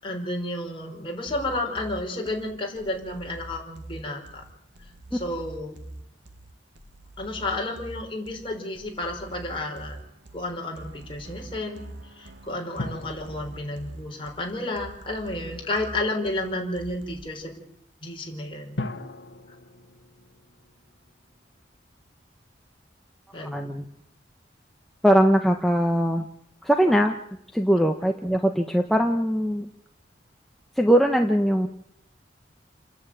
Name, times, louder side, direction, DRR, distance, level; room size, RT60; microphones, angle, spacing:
voice 1, 0.0-4.4 5.1-5.8 7.2-10.0 10.3-17.6 18.0-18.8 23.3-23.7, left 2 dB, 30° left, 1 dB, 5.1 m, -31 dB
sound 1, 1.3-17.3, right 2 dB, 75° right, 2.2 m, -44 dB
sound 2, 12.8-15.4 18.8-21.4 21.7-21.8, left 2 dB, 80° left, 1.5 m, -39 dB
voice 2, 23.4-23.8 25.0-26.3 26.6-27.2 27.5-29.7 30.8-31.7, equal, ahead, 2 dB, 1.2 m, -21 dB
29.5 x 10.5 x 9.3 m, 0.77 s
head